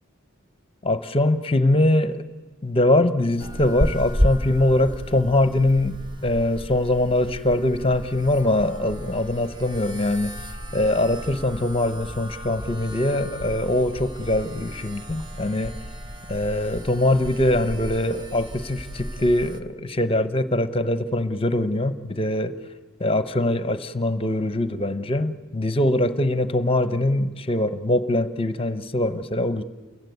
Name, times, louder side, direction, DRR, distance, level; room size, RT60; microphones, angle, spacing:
voice 1, 0.8-2.2 2.6-10.3 10.7-15.7 16.3-22.5 23.0-29.6, left 1 dB, 25° left, 12 dB, 0.8 m, -22 dB
sound 1, 3.4-19.6, equal, 20° right, 1.0 m, -32 dB
29.0 x 15.0 x 9.3 m, 1.3 s
head